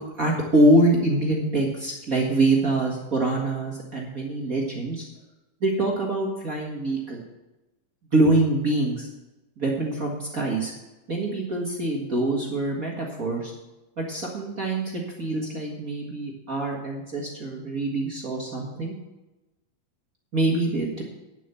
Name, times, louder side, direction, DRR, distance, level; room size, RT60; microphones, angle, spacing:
voice 1, 0.2-5.0 5.6-7.2 8.1-9.1 9.6-10.7 11.1-13.5 14.0-18.9 20.3-21.0, right 2 dB, 40° right, -2 dB, 1.3 m, -24 dB
10.5 x 7.6 x 6.9 m, 1.0 s
omnidirectional pair, 4.0 m